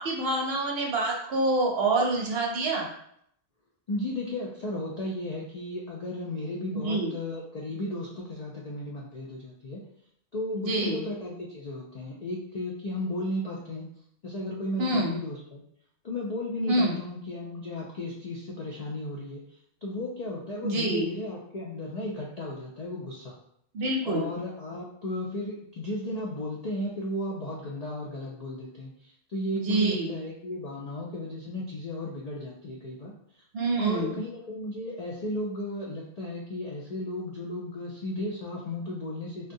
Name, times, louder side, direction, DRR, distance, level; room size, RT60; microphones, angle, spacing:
voice 1, 0.0-2.9 6.7-7.1 10.5-11.0 14.8-15.2 16.7-17.0 20.6-21.1 23.7-24.3 29.5-30.1 33.5-34.2, right 2 dB, 60° right, 0 dB, 0.8 m, -26 dB
voice 2, 3.9-9.8 10.3-13.9 14.2-15.6 16.0-19.4 19.8-23.3 24.0-28.9 29.3-33.1 33.8-39.5, left 1 dB, 75° left, -3 dB, 0.3 m, -34 dB
3.6 x 2.2 x 2.6 m, 0.71 s
omnidirectional pair, 1.3 m